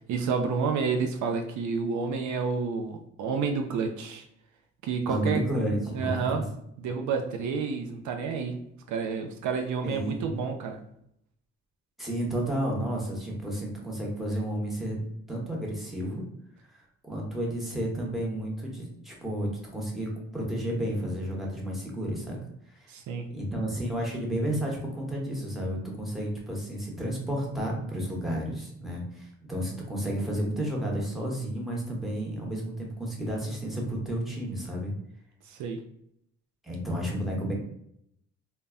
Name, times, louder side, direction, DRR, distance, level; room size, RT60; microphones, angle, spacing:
voice 1, 0.1-4.2 4.8-5.4 5.9-6.5 6.8-8.6 8.9-10.8 22.9-23.3 35.5-35.8, right 5 dB, 70° right, 5 dB, 0.4 m, -29 dB
voice 2, 5.1-6.2 9.8-10.3 12.0-15.0 15.3-16.2 16.7-22.4 22.7-22.9 23.3-34.9 36.6-37.5, right 1 dB, ahead, -3 dB, 0.9 m, -31 dB
2.1 x 2.0 x 3.5 m, 0.74 s
cardioid pair, 90°, 30 cm